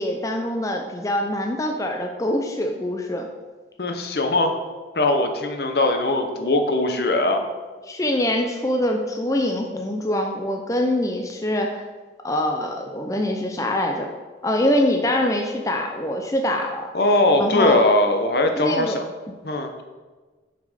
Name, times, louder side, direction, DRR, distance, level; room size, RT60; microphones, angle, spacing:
voice 1, 0.0-3.3 7.9-11.8 12.2-14.1 14.4-16.9 17.4-17.8 18.5-19.0, left 1 dB, 15° left, 2 dB, 0.5 m, -24 dB
voice 2, 3.8-4.5 4.9-7.4 16.9-19.0 19.4-19.8, left 2 dB, 60° left, 5 dB, 0.8 m, -20 dB
6.3 x 5.9 x 5.0 m, 1.3 s
head